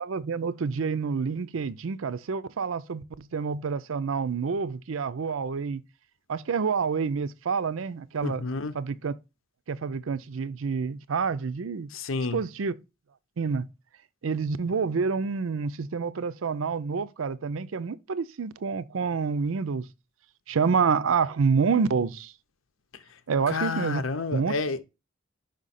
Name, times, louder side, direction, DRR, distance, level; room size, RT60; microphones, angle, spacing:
voice 1, 0.0-5.8 6.3-8.5 8.7-9.1 9.7-11.9 12.3-12.7 13.4-13.7 14.2-19.9 20.5-22.3 23.3-24.0 24.3-24.5, right 5 dB, 85° right, 0.5 m, -28 dB
voice 2, 8.2-8.7 11.9-12.4 23.5-24.8, left 4 dB, 85° left, 0.8 m, -30 dB
5.3 x 5.1 x 4.1 m
head